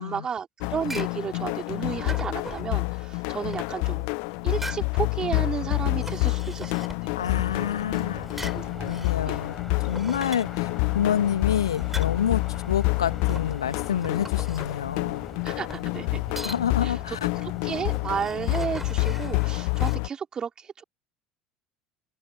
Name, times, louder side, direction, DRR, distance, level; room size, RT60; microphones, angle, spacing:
voice 1, 0.0-4.1 4.4-6.7 7.0-7.1 8.5-9.4 15.4-16.1 16.8-17.2 17.4-20.8, right 7 dB, 30° right, 4.8 m, -33 dB
sound 1, 0.6-20.1, left 40 dB or more, 55° left, 1.0 m, -28 dB
sound 2, 0.6-20.0, right 2 dB, 10° right, 3.5 m, -43 dB
voice 2, 7.1-8.5 8.9-10.7 10.9-12.4 12.7-15.3 16.4-17.3, left 9 dB, 75° left, 1.8 m, -28 dB
sound 3, 7.2-19.2, left 1 dB, 5° left, 5.2 m, -43 dB
open air
figure-of-eight pair, 65°, 3 cm